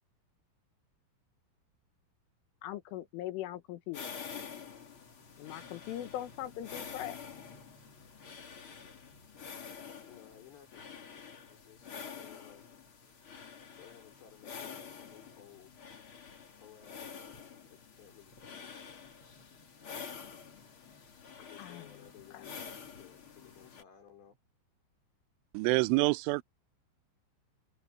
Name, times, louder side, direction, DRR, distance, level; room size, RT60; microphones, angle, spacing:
voice 1, 2.6-4.2 5.4-7.2 21.6-21.9 22.3-22.4, left 13 dB, 85° left, 4.0 m, -40 dB
sound 1, 3.9-23.8, left 6 dB, 40° left, 2.1 m, -48 dB
voice 2, 10.1-12.6 13.8-15.7 16.6-17.4 17.7-18.7 21.4-24.4, left 10 dB, 60° left, 6.5 m, -58 dB
voice 3, 25.5-26.4, right 26 dB, 85° right, 3.0 m, -27 dB
omnidirectional pair, 5.6 m